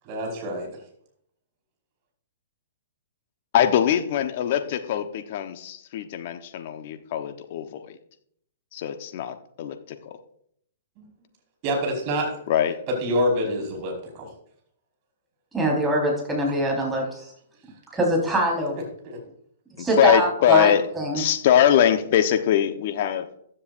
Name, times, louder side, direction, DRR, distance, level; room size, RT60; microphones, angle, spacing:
voice 1, 0.1-0.7 11.0-11.1 11.6-12.4 13.0-14.3 19.1-19.2, equal, 40° right, 1 dB, 5.1 m, -26 dB
voice 2, 3.5-7.9 8.7-9.8 10.1-10.2 12.5-12.7 19.8-20.8 21.1-23.5, left 10 dB, 50° left, 8 dB, 1.1 m, -22 dB
voice 3, 15.5-17.2 17.9-18.8 19.8-21.2, right 1 dB, 10° right, -1 dB, 4.5 m, -23 dB
15.0 x 10.0 x 2.6 m, 0.69 s
hypercardioid pair, 120°, 0 cm